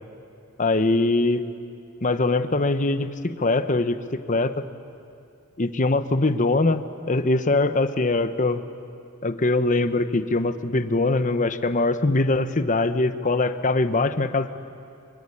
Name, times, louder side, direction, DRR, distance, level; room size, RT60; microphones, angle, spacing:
voice 1, 0.6-1.4 2.0-4.0 4.3-4.5 5.6-8.6 9.2-14.6, left 2 dB, 35° left, 10 dB, 0.9 m, -22 dB
24.0 x 22.5 x 9.9 m, 2.6 s
head